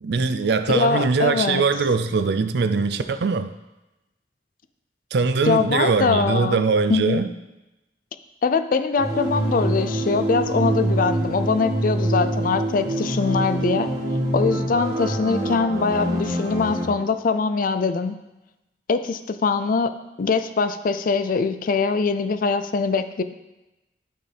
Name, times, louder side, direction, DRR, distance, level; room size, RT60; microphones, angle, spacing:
voice 1, 0.0-3.5 5.1-7.3, right 4 dB, 65° right, 9 dB, 0.5 m, -21 dB
voice 2, 0.7-1.6 5.4-6.6 6.9-7.2 8.4-13.9 14.3-18.1 18.9-19.9 20.2-23.2, left 4 dB, 50° left, 11 dB, 0.4 m, -22 dB
sound 1, 9.0-16.9, right 1 dB, 20° right, 1.6 m, -25 dB
12.5 x 4.5 x 3.4 m, 1.0 s
head